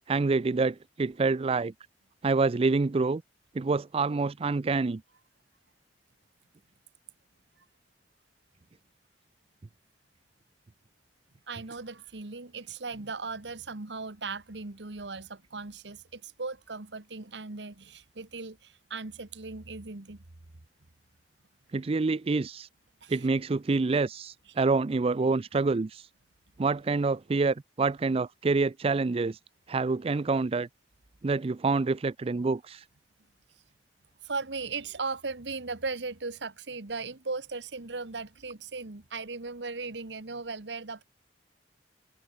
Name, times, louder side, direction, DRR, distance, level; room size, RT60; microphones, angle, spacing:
voice 1, 0.1-1.7 2.2-3.2 3.5-5.0 21.7-22.7 23.1-26.1 26.6-29.4 29.7-30.7 31.2-32.8, right 3 dB, 35° right, 0.4 m, -27 dB
voice 2, 11.5-20.2 23.0-23.3 34.2-41.0, right 4 dB, 85° right, 1.5 m, -37 dB
head